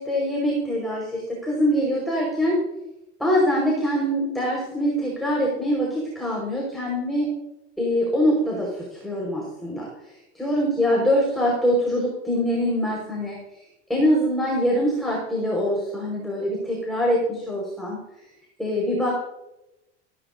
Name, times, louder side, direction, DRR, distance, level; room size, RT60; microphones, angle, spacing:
voice 1, 0.0-2.6 3.2-7.3 7.8-9.8 10.4-13.4 13.9-18.0 18.6-19.1, equal, ahead, -4 dB, 5.4 m, -23 dB
16.0 x 13.5 x 2.8 m, 0.91 s
supercardioid pair, 105°, 34 cm